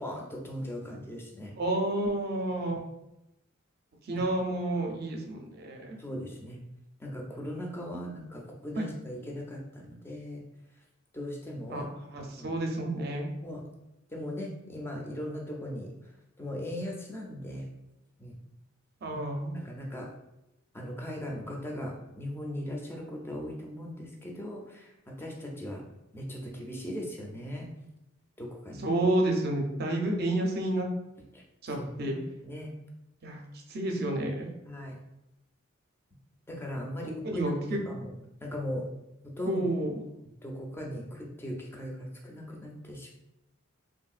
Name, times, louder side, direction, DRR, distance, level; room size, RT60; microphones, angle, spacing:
voice 1, 0.0-1.6 4.1-4.3 6.0-6.6 7.0-10.4 11.1-11.9 12.4-12.6 13.4-13.6 14.1-15.9 16.4-17.7 18.2-18.4 19.1-19.2 19.5-20.1 20.7-25.8 26.1-27.7 28.4-28.9 31.3-31.4 31.7-31.9 32.4-32.7 34.7-35.0 36.5-38.1 38.4-38.9 39.4-39.6 40.4-43.1, equal, 10° left, 0 dB, 0.4 m, -38 dB
voice 2, 1.6-2.8 4.1-5.9 8.8-8.9 11.7-11.8 12.1-13.3 19.0-19.6 28.8-30.9 31.6-32.2 33.2-33.4 33.7-34.5 37.1-37.8 39.5-39.9, right 1 dB, 50° right, 2 dB, 0.5 m, -30 dB
3.0 x 2.6 x 2.4 m, 0.89 s
head